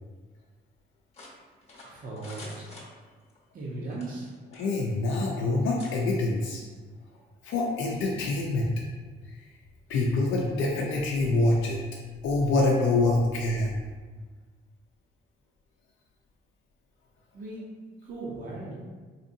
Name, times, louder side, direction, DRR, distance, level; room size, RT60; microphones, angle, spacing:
sound 1, 1.1-3.4 3.9-4.8 5.1-5.3 5.8-5.9, left 2 dB, 30° left, 0.9 m, -47 dB
voice 1, 1.8-2.7 3.5-4.3 17.3-17.7 18.0-18.8, right 2 dB, 45° right, -5 dB, 0.7 m, -37 dB
voice 2, 4.6-6.6 7.4-8.7 9.3-9.4 9.9-11.8 12.2-13.8, left 2 dB, 80° left, -2 dB, 0.5 m, -25 dB
4.1 x 2.6 x 2.6 m, 1.4 s
cardioid pair, 90°, 20 cm